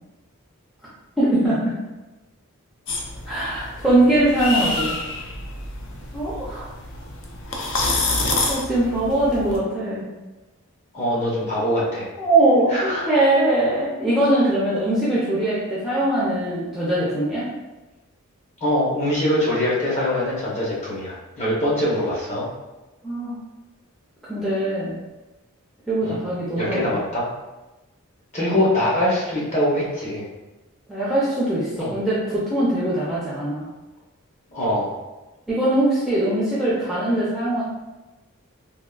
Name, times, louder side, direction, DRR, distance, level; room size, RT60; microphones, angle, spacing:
voice 1, 1.2-1.7 3.3-5.0 6.1-6.7 8.5-10.1 12.2-17.4 23.0-23.3 24.3-24.9 25.9-27.0 30.9-33.7 35.5-37.6, right 1 dB, ahead, -9 dB, 0.4 m, -21 dB
sound 1, 2.9-9.6, left 2 dB, 55° left, 0.4 m, -28 dB
voice 2, 10.9-12.1 12.7-13.1 18.6-22.5 26.0-26.2 26.6-27.3 28.3-30.3 31.8-31.9 34.5-34.9, left 1 dB, 30° left, -6 dB, 0.8 m, -23 dB
3.5 x 2.2 x 2.3 m, 1.1 s
head